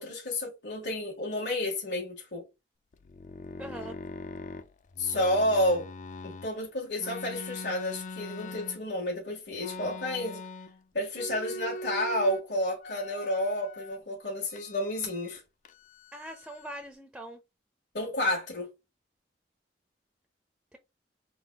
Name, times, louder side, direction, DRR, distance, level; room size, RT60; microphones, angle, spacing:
voice 1, 0.0-2.5 5.0-5.9 6.2-10.4 10.9-15.4 17.9-18.7, left 1 dB, 70° left, 1.7 m, -30 dB
sound 1, 2.9-6.5 7.0-9.1 9.6-10.8 11.1-12.4 12.8-14.0 14.5-15.4 15.7-16.8, left 2 dB, 45° left, 0.4 m, -42 dB
voice 2, 3.6-4.0 16.1-17.4 20.7-20.8, right 1 dB, 5° right, 0.5 m, -42 dB
3.9 x 2.3 x 4.5 m
head